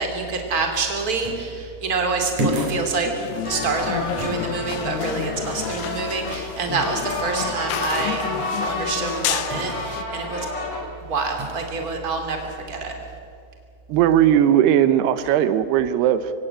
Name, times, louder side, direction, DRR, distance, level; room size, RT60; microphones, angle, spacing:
voice 1, 0.0-3.1 3.4-8.2 8.7-10.4 11.0-12.9, right 4 dB, 25° right, 3 dB, 3.0 m, -27 dB
sound 1, 1.2-1.5 2.4-2.9 4.2-4.4 9.5-9.8 11.4-11.7, equal, 50° right, 4.4 m, -27 dB
sound 2, 3.1-10.0, left 11 dB, 90° left, 2.9 m, -31 dB
sound 3, 3.4-10.8, left 1 dB, 30° left, 5.5 m, -30 dB
voice 2, 13.9-16.3, right 10 dB, 85° right, 13 dB, 2.9 m, -18 dB
25.5 x 16.5 x 8.9 m, 2.4 s
omnidirectional pair, 4.6 m